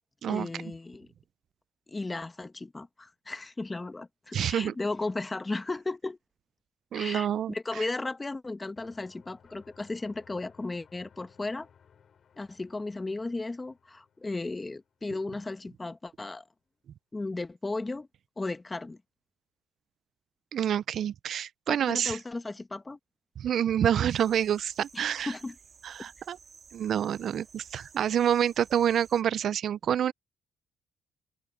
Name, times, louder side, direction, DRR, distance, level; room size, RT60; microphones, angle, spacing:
voice 1, 0.3-1.1 1.9-6.2 6.9-11.7 12.4-16.4 17.1-18.1 18.4-19.0 21.7-23.0 24.9-25.5, left 2 dB, 20° left, 1.2 m, -35 dB
voice 2, 4.3-4.7 6.9-7.8 20.5-22.2 23.4-25.3 25.8-26.4 26.7-30.1, right 9 dB, 65° right, 0.4 m, -27 dB
sound 1, 8.8-15.5, left 7 dB, 55° left, 3.3 m, -61 dB
sound 2, 24.1-29.2, right 5 dB, 45° right, 2.3 m, -54 dB
open air
cardioid pair, 90°, 0 cm